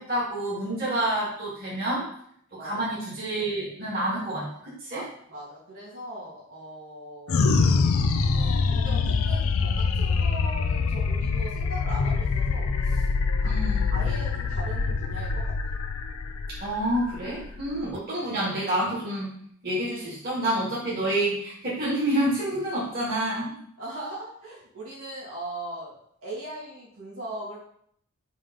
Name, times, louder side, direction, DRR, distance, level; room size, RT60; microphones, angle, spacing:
voice 1, 0.0-2.1 2.6-5.0 13.4-14.0 16.6-19.3 19.6-23.5, right 1 dB, 45° right, -8 dB, 2.2 m, -28 dB
voice 2, 4.9-13.1 13.4-13.5 13.9-15.5 23.8-27.6, right 1 dB, 70° right, -7 dB, 2.6 m, -40 dB
sound 1, 7.3-18.0, left 4 dB, 75° left, 0.5 m, -25 dB
5.3 x 3.4 x 5.4 m, 0.67 s
head